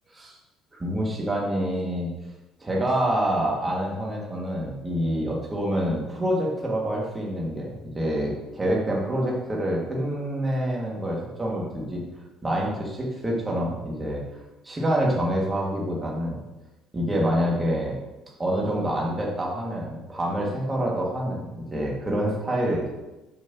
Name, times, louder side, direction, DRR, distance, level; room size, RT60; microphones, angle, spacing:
voice 1, 0.8-2.1 2.6-12.0 12.4-14.2 14.6-16.4 16.9-17.9 18.4-22.9, equal, 20° right, -3 dB, 2.2 m, -26 dB
7.7 x 6.3 x 3.0 m, 1.0 s
supercardioid pair, 90°, 0 cm